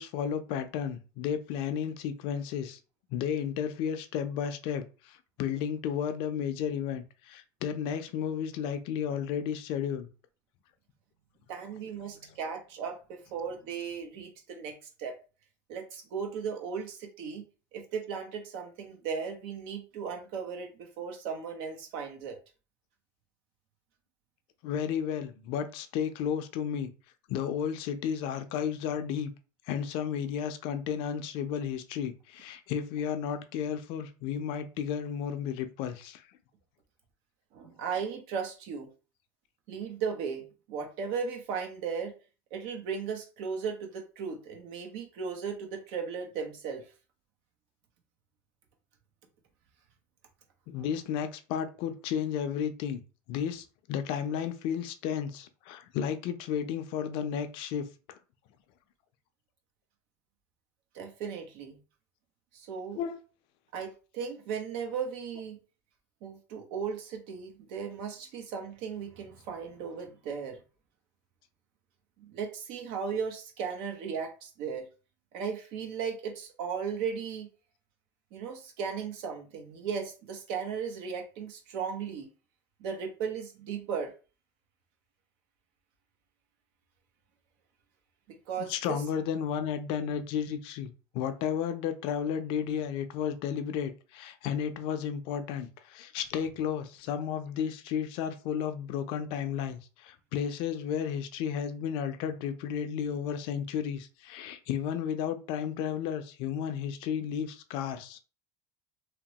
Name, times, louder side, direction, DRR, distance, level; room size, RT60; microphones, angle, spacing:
voice 1, 0.0-2.8 3.1-10.1 24.6-26.9 27.3-29.3 29.7-36.2 50.7-53.0 53.3-58.2 63.0-63.2 88.6-108.2, left 8 dB, 65° left, 0.4 m, -33 dB
voice 2, 11.5-15.2 15.7-17.4 17.7-22.4 37.5-38.9 39.7-42.1 42.5-46.8 60.9-61.8 62.5-63.0 63.7-65.6 66.2-70.6 72.2-74.9 75.3-77.5 78.3-82.3 82.8-84.1 88.3-89.0, right 6 dB, 75° right, 0.8 m, -36 dB
2.9 x 2.0 x 2.8 m
supercardioid pair, 105°, 9 cm